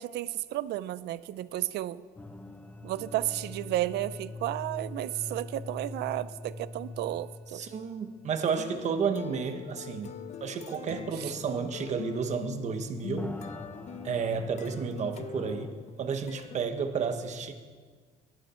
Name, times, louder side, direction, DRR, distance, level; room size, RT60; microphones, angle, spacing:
voice 1, 0.0-2.0 2.8-7.6 11.2-11.3, right 14 dB, 90° right, 17 dB, 0.5 m, -33 dB
sound 1, 2.2-8.7 9.0-9.1 9.7-9.8 13.2-15.7, left 2 dB, 10° left, 0.7 m, -44 dB
voice 2, 7.5-10.1 10.4-13.4 14.0-17.5, right 6 dB, 45° right, 7 dB, 1.3 m, -32 dB
sound 2, 8.5-16.6, left 8 dB, 45° left, 0.7 m, -43 dB
19.0 x 12.5 x 4.4 m, 1.5 s
cardioid pair, 155°, 17 cm